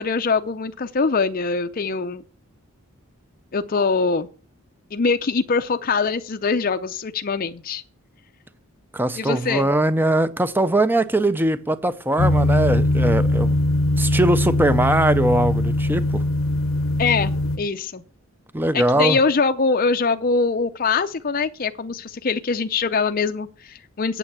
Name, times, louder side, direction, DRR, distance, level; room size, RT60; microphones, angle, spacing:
voice 1, 0.0-2.2 3.5-4.3 4.9-7.8 9.2-9.7 17.0-18.0 18.7-24.2, left 4 dB, 40° left, 0.5 m, -23 dB
voice 2, 8.9-13.5 14.0-16.2 18.5-19.2, right 1 dB, 10° right, 0.5 m, -21 dB
sound 1, 12.2-17.6, left 1 dB, 65° left, 0.8 m, -21 dB
9.0 x 7.0 x 7.2 m
head